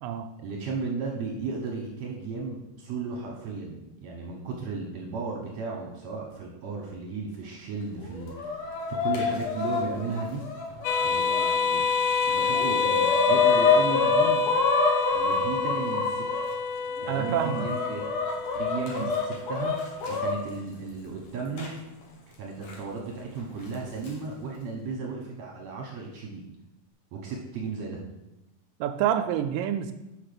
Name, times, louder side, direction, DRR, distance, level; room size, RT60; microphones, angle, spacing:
voice 1, 0.4-10.4 11.0-11.9 12.3-14.4 15.1-16.4 17.0-18.0 18.5-19.7 20.1-21.8 22.3-26.4 27.1-28.0, right 4 dB, 65° right, -1 dB, 1.9 m, -35 dB
Chicken rooster, 8.0-11.5 12.0-12.1 12.4-16.4 17.1-20.3 21.6-21.7 22.7-22.8 23.7-24.1, left 5 dB, 55° left, 2.2 m, -27 dB
sound 1, 10.8-19.8, left 5 dB, 85° left, 2.4 m, -28 dB
voice 2, 17.1-17.7 19.0-19.1 28.8-29.9, right 10 dB, 80° right, 8 dB, 2.1 m, -27 dB
5.9 x 5.9 x 6.7 m, 0.94 s
omnidirectional pair, 4.1 m